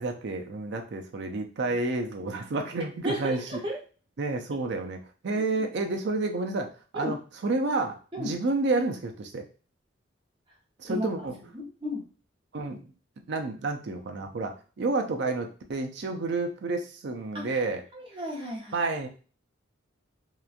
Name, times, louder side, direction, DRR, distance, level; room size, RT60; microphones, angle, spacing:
voice 1, 0.0-3.6 4.2-6.7 6.9-7.2 7.4-9.5 10.8-11.4 12.5-12.8 13.3-17.8 18.7-19.1, right 3 dB, 55° right, 4 dB, 0.4 m, -30 dB
voice 2, 3.0-3.8 5.3-5.6 6.9-7.2 8.1-8.3 10.9-11.1 11.5-12.0 17.3-17.6 17.9-18.8, equal, 25° right, -3 dB, 0.7 m, -34 dB
2.9 x 2.2 x 2.4 m, 0.38 s
head